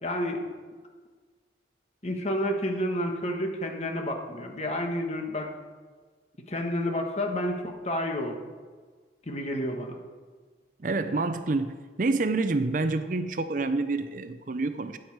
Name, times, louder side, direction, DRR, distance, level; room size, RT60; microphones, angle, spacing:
voice 1, 0.0-0.4 2.0-5.5 6.5-8.4 9.3-10.0, left 1 dB, 35° left, 3 dB, 1.4 m, -30 dB
voice 2, 10.8-15.0, right 3 dB, 45° right, 10 dB, 0.5 m, -28 dB
13.0 x 9.5 x 4.7 m, 1.5 s
head